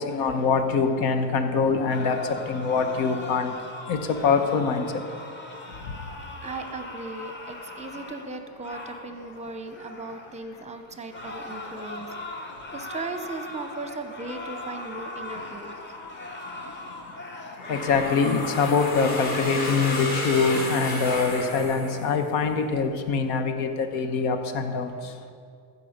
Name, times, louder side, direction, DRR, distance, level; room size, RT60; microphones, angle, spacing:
voice 1, 0.0-3.5 3.9-4.9 17.7-24.9, left 5 dB, 80° left, 7 dB, 1.2 m, -24 dB
sound 1, 1.9-10.4 11.1-21.0, left 2 dB, 20° left, 1.2 m, -40 dB
voice 2, 6.4-15.8, right 3 dB, 15° right, 8 dB, 0.7 m, -37 dB
sound 2, 17.6-22.5, left 2 dB, 45° left, 2.9 m, -31 dB
15.0 x 5.5 x 5.2 m, 2.3 s
cardioid pair, 115°, 49 cm